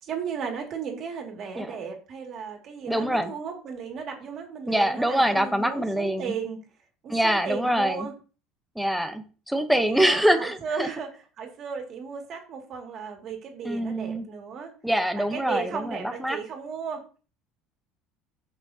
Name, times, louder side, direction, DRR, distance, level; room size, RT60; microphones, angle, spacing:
voice 1, 0.0-6.6 7.0-8.1 9.8-11.1 11.4-14.7 15.1-17.2, right 6 dB, 35° right, 3 dB, 2.1 m, -35 dB
voice 2, 2.9-3.3 4.7-6.3 7.1-8.1 8.8-10.9 13.6-14.3 14.8-16.4, equal, ahead, 8 dB, 0.8 m, -24 dB
15.5 x 5.8 x 2.8 m, 0.36 s
cardioid pair, 170°, 0 cm